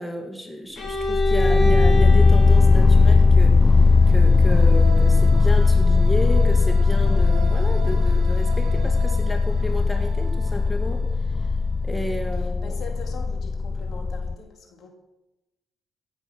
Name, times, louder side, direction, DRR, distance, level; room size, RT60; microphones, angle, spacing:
voice 1, 0.0-3.6 4.1-11.1 11.4-11.5 11.8-12.7, left 1 dB, 5° left, 4 dB, 2.0 m, -32 dB
Bowed string instrument, 0.8-4.6, right 1 dB, 45° left, 3.9 m, -28 dB
sound 1, 0.9-14.4, left 4 dB, 25° left, 0.4 m, -18 dB
sound 2, 3.5-12.1, right 8 dB, 70° right, 1.3 m, -41 dB
voice 2, 12.4-14.9, left 4 dB, 65° left, 3 dB, 3.3 m, -42 dB
16.5 x 7.9 x 6.3 m, 0.95 s
cardioid pair, 90°, 0 cm